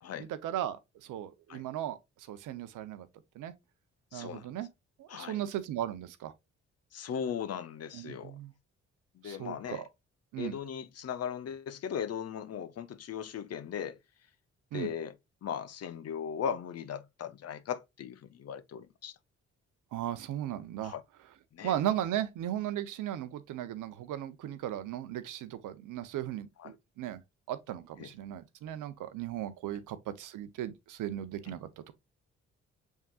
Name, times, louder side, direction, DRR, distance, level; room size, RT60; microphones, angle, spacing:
voice 1, 0.2-3.1 3.3-3.5 4.1-4.7 5.0-6.3 7.9-8.5 9.2-9.8 10.3-10.6 14.7-14.9 19.9-20.9 21.6-27.2 27.5-31.9, right 12 dB, 70° right, 0.7 m, -37 dB
voice 2, 4.1-4.5 5.1-5.4 6.9-8.4 9.2-9.8 10.4-14.0 14.7-15.1 15.4-19.1 20.8-21.0 21.5-21.7 26.6-26.7 28.0-28.1 31.5-31.6, left 8 dB, 50° left, 0.6 m, -38 dB
6.3 x 3.6 x 2.3 m
hypercardioid pair, 40°, 32 cm